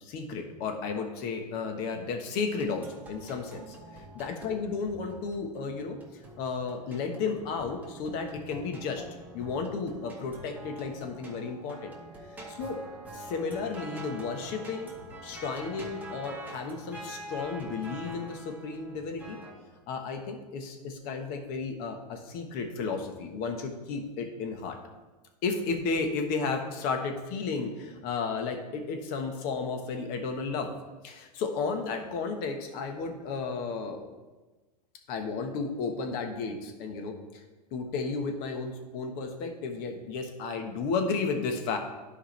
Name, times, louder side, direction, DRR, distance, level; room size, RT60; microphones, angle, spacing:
voice 1, 0.0-9.0 9.3-11.9 12.5-12.8 13.1-19.4 19.9-24.8 25.4-30.7 31.0-34.1 35.1-37.4 37.7-41.8, left 4 dB, 50° left, 5 dB, 1.3 m, -33 dB
sound 1, 2.6-19.5, right 1 dB, 5° right, 1.9 m, -46 dB
11.5 x 4.9 x 3.3 m, 1.2 s
hypercardioid pair, 110°, 21 cm